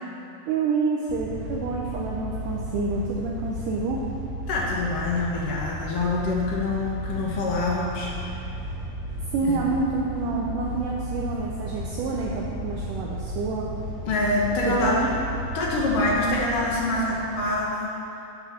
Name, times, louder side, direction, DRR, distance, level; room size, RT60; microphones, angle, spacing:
voice 1, 0.5-4.1 9.3-13.7 14.6-15.1, right 3 dB, 85° right, -3 dB, 1.8 m, -28 dB
sound 1, 1.1-17.6, right 1 dB, 60° right, 2.0 m, -34 dB
voice 2, 4.5-8.1 9.4-9.6 14.1-15.2 15.5-17.9, left 2 dB, 65° left, -4 dB, 2.4 m, -25 dB
10.0 x 5.6 x 5.9 m, 2.8 s
omnidirectional pair, 4.6 m